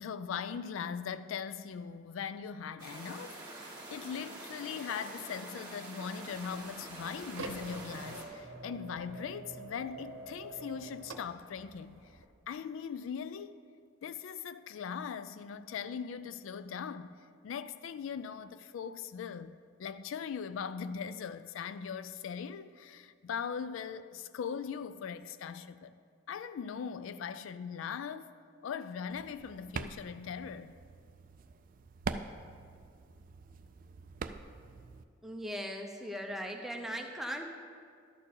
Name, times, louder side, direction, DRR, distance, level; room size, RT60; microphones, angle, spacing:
voice 1, 0.0-12.1 12.5-13.6 14.0-17.2 17.4-26.0 26.3-28.3 28.6-30.7, left 7 dB, 75° left, 0.3 m, -40 dB
sound 1, 2.8-8.3, right 2 dB, 20° right, 1.9 m, -46 dB
sound 2, 6.2-12.2, right 2 dB, 80° right, 0.8 m, -47 dB
sound 3, 29.1-35.0, right 4 dB, 40° right, 0.3 m, -44 dB
voice 2, 35.2-37.5, equal, ahead, 0.6 m, -39 dB
12.0 x 4.5 x 7.0 m
head